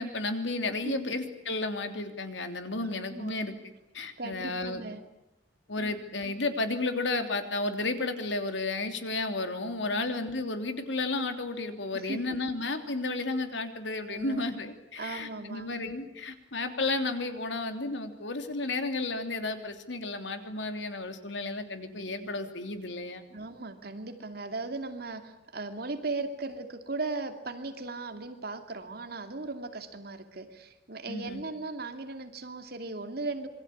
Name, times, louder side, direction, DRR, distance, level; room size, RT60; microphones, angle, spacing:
voice 1, 0.0-3.5 3.9-4.8 5.7-23.2 31.1-31.4, left 2 dB, 80° left, 7 dB, 3.3 m, -32 dB
voice 2, 2.8-3.4 4.2-5.0 5.7-6.0 9.9-10.1 11.9-12.4 14.1-14.5 15.0-15.7 23.3-33.5, right 3 dB, 55° right, 7 dB, 2.7 m, -37 dB
27.0 x 23.0 x 8.8 m, 0.89 s
head